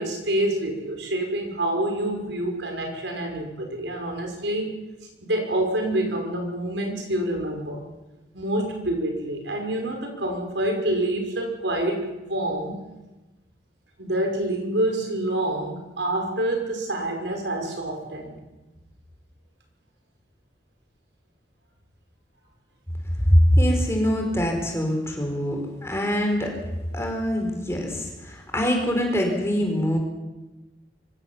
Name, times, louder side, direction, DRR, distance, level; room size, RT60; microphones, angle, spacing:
voice 1, 0.0-4.7 5.2-7.8 8.3-12.8 14.0-18.4, right 1 dB, 85° right, 3 dB, 5.8 m, -27 dB
voice 2, 23.3-26.5 26.9-30.0, equal, 15° left, 2 dB, 4.4 m, -23 dB
24.0 x 16.0 x 7.4 m, 1.1 s
head